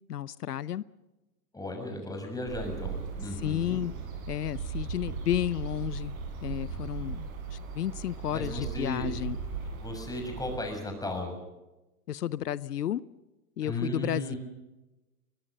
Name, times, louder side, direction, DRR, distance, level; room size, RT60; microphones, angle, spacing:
voice 1, 0.1-0.8 3.4-3.9 4.3-6.1 6.4-9.4 12.1-13.0 13.6-14.3, left 11 dB, 90° left, 0.8 m, -32 dB
voice 2, 1.5-3.8 8.3-9.1 9.8-11.3 13.6-14.4, left 1 dB, 10° left, 6.6 m, -35 dB
sound 1, 2.5-10.6, right 6 dB, 60° right, 7.5 m, -38 dB
23.0 x 21.0 x 6.6 m
hypercardioid pair, 115°, 46 cm